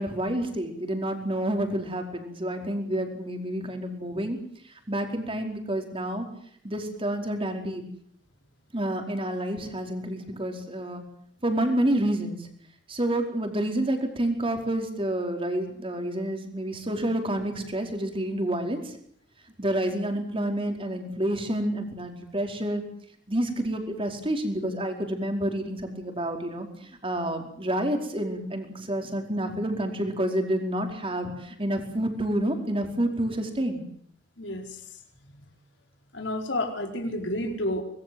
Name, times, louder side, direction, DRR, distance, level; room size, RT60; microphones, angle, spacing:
voice 1, 0.0-4.4 4.9-6.2 6.6-7.8 8.7-11.0 11.4-12.5 12.9-19.0 19.6-22.8 23.3-33.8, right 1 dB, 30° right, 4 dB, 4.9 m, -29 dB
voice 2, 34.4-34.8 35.3-35.4 36.1-37.8, left 1 dB, 85° left, 3 dB, 4.7 m, -30 dB
25.0 x 21.0 x 7.9 m, 0.63 s
head